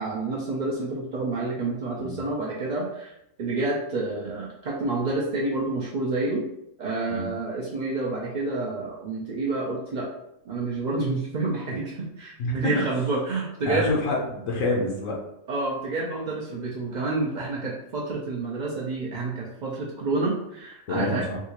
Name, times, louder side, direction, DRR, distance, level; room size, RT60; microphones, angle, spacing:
voice 1, 0.0-6.5 6.8-10.1 10.5-14.0 15.5-21.3, right 3 dB, 70° right, -4 dB, 0.4 m, -29 dB
voice 2, 12.4-12.7 13.6-15.2 20.9-21.4, left 2 dB, 75° left, -2 dB, 1.1 m, -27 dB
3.5 x 2.4 x 2.9 m, 0.80 s
omnidirectional pair, 1.4 m